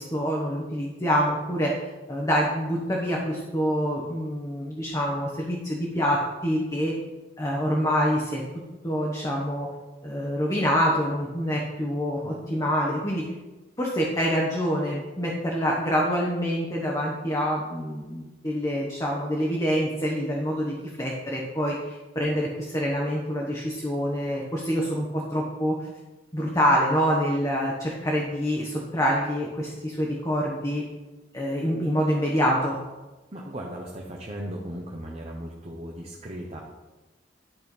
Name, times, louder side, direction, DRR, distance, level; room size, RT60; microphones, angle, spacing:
voice 1, 0.0-1.8 2.1-6.9 7.4-8.4 8.8-9.7 10.0-13.2 13.8-25.9 26.3-30.8 31.3-32.8, equal, 20° left, -3 dB, 1.1 m, -26 dB
voice 2, 33.3-36.6, right 1 dB, 35° right, -2 dB, 1.0 m, -37 dB
11.0 x 4.4 x 5.4 m, 1.2 s
head